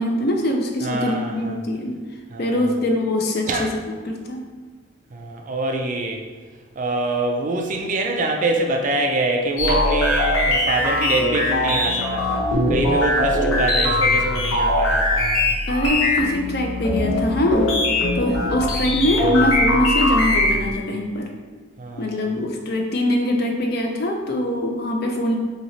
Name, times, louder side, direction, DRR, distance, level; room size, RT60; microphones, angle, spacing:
voice 1, 0.0-2.0 2.4-4.4 13.1-13.2 15.7-17.8 18.1-21.3 22.0-25.4, left 1 dB, 50° left, 2 dB, 0.5 m, -23 dB
voice 2, 0.8-1.6 2.3-2.6 3.5-3.7 5.1-6.2 6.8-12.4 12.7-15.3 21.8-22.3, right 2 dB, 35° right, 2 dB, 0.3 m, -25 dB
sound 1, 9.6-20.7, left 1 dB, 85° left, 0.9 m, -21 dB
3.0 x 2.8 x 4.1 m, 1.5 s
head